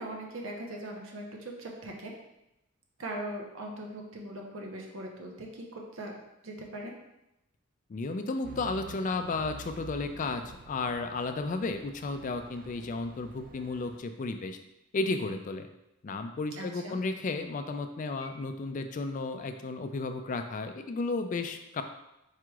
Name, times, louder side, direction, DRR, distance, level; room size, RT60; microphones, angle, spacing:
voice 1, 0.0-2.1 3.0-6.1 6.4-6.9 16.5-17.0 18.2-18.3, right 1 dB, 85° right, 0 dB, 0.9 m, -40 dB
voice 2, 7.9-14.6 14.9-15.7 16.0-21.8, left 3 dB, 40° left, 7 dB, 0.3 m, -33 dB
Truck / Idling, 8.4-14.0, right 4 dB, 45° right, 0.3 m, -49 dB
4.9 x 4.6 x 2.3 m, 0.89 s
head